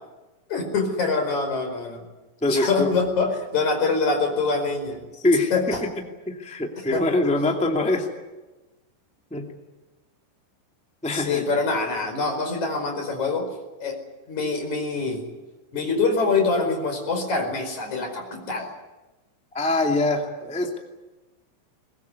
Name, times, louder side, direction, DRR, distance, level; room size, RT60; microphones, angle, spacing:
voice 1, 0.5-2.0 2.5-5.0 5.5-5.8 6.9-7.0 11.1-13.5 13.8-14.0 14.3-15.2 15.7-18.7, left 4 dB, 40° left, 4 dB, 5.9 m, -25 dB
voice 2, 2.4-2.9 5.2-5.5 6.3-8.1 9.3-9.4 11.0-11.4 19.5-20.8, left 2 dB, 10° left, 2 dB, 0.4 m, -23 dB
22.5 x 21.5 x 9.6 m, 1.1 s
omnidirectional pair, 5.4 m